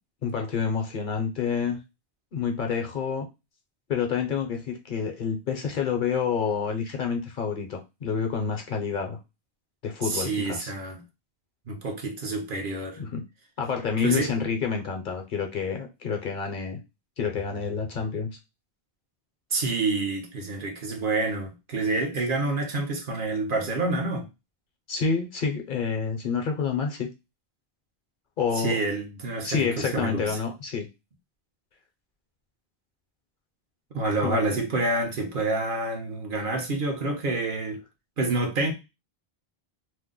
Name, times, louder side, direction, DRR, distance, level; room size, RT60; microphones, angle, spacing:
voice 1, 0.2-1.8 2.3-3.3 3.9-9.2 9.8-10.7 13.0-13.2 13.6-16.8 17.2-18.4 24.9-27.1 28.4-28.7 29.4-30.9 34.2-34.6, left 6 dB, 55° left, 0.7 m, -28 dB
voice 2, 10.0-11.0 11.7-13.0 14.0-14.3 19.5-24.3 28.6-30.4 33.9-37.8 38.2-38.7, right 2 dB, 60° right, 0.9 m, -28 dB
2.7 x 2.0 x 3.6 m
omnidirectional pair, 1.1 m